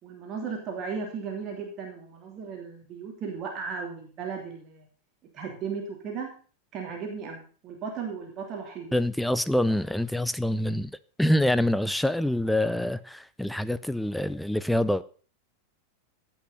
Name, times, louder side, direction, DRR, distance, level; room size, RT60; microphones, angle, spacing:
voice 1, 0.0-4.9 5.3-6.3 6.7-9.1, right 5 dB, 35° right, 2.9 m, -36 dB
voice 2, 8.9-15.0, left 1 dB, ahead, 0.5 m, -26 dB
15.5 x 6.3 x 5.5 m
figure-of-eight pair, 90°, 0 cm